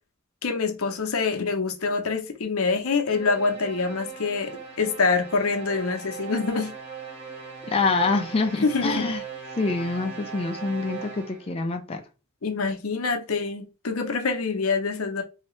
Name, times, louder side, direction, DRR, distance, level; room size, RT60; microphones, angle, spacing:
voice 1, 0.4-6.7 8.6-9.1 12.4-15.2, left 4 dB, 80° left, 0.7 m, -25 dB
sound 1, 3.0-11.6, right 6 dB, 25° right, 1.5 m, -39 dB
voice 2, 7.7-9.2 9.6-12.0, left 3 dB, 25° left, 0.4 m, -26 dB
3.2 x 2.8 x 3.1 m
head